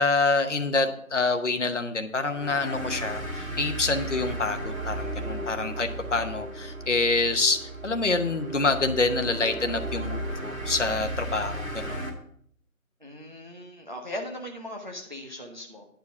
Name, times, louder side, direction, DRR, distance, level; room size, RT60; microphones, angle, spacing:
voice 1, 0.0-12.1, left 3 dB, 55° left, 7 dB, 1.0 m, -26 dB
sound 1, 2.2-12.1, right 1 dB, 70° right, 2.3 m, -35 dB
voice 2, 13.0-15.9, left 1 dB, 35° right, 2 dB, 0.9 m, -39 dB
10.0 x 4.9 x 6.8 m, 0.65 s
figure-of-eight pair, 175°, 42 cm